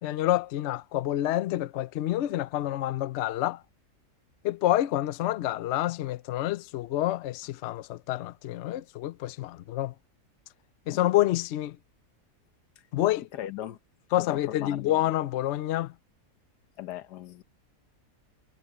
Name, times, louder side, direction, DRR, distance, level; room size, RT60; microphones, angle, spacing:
voice 1, 0.0-3.6 4.4-9.9 10.9-11.8 12.9-13.3 14.1-15.9, left 14 dB, 65° left, 0.7 m, -28 dB
voice 2, 13.3-13.8 14.2-14.9 16.8-17.4, left 12 dB, 85° left, 1.4 m, -38 dB
omnidirectional pair, 1.7 m